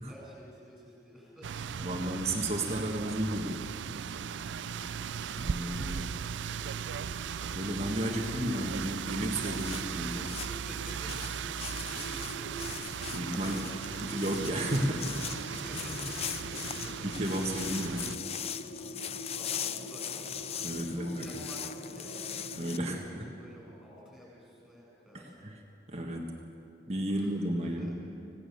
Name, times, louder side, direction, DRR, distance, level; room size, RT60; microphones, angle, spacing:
voice 1, 0.0-1.7 5.6-6.9 10.5-11.1 11.5-13.7 15.4-17.1 18.7-22.2 22.8-25.5 27.1-27.9, equal, ahead, -5 dB, 7.7 m, -52 dB
sound 1, 1.4-18.2, right 7 dB, 75° right, 0.4 m, -38 dB
voice 2, 1.8-3.6 5.4-6.1 7.5-10.4 13.1-13.7 14.0-15.2 17.0-18.1 20.6-21.3 22.5-23.3 25.1-25.6 25.9-26.3 26.9-28.0, right 1 dB, 35° right, 1 dB, 1.7 m, -33 dB
sound 2, 3.7-22.9, right 1 dB, 90° left, 3.1 m, -46 dB
sound 3, 9.4-22.8, left 9 dB, 35° left, 0.5 m, -40 dB
26.0 x 17.5 x 6.9 m, 2.7 s
head